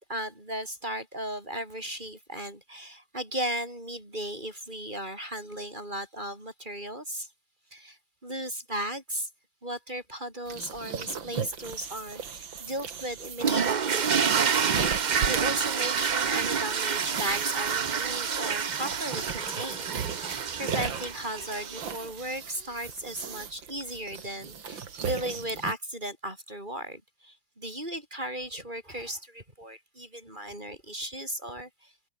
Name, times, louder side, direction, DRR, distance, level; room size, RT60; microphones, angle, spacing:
voice 1, 0.1-7.3 7.7-9.3 9.6-14.1 14.9-31.9, right 1 dB, 25° right, 5.8 m, -36 dB
sound 1, 10.5-25.7, right 6 dB, 85° right, 2.9 m, -38 dB
sound 2, 13.4-21.9, right 6 dB, 60° right, 0.4 m, -28 dB
open air
omnidirectional pair, 2.0 m